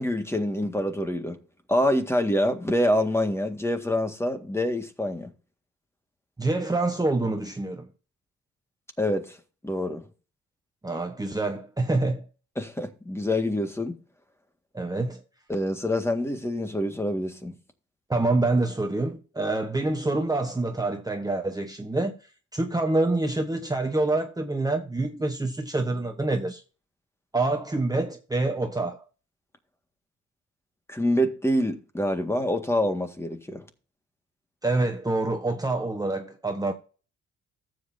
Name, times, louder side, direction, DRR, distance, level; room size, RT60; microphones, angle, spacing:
voice 1, 0.0-1.4 1.7-5.3 9.0-9.4 9.6-10.0 12.6-14.0 15.5-17.5 30.9-33.6, left 1 dB, 10° left, 1.8 m, -26 dB
voice 2, 6.4-7.9 10.8-12.2 14.7-15.2 18.1-22.2 22.5-26.6 27.3-29.0 34.6-36.7, right 2 dB, 10° right, 1.2 m, -26 dB
14.5 x 7.9 x 2.7 m
cardioid pair, 90°, 30 cm